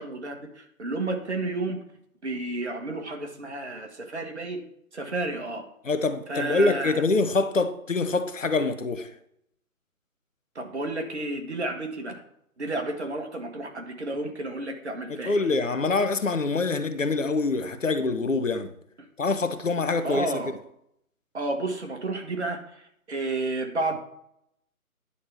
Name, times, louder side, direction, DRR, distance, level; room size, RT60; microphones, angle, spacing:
voice 1, 0.0-1.8 2.2-4.6 4.9-5.6 6.3-7.0 10.5-12.2 12.6-15.4 19.0-19.1 20.0-20.6 21.3-24.0, right 2 dB, 50° right, 1.6 m, -31 dB
voice 2, 5.8-9.1 15.2-18.7 19.2-20.3, left 3 dB, 60° left, 1.0 m, -25 dB
10.0 x 4.6 x 7.1 m
figure-of-eight pair, 150°, 44 cm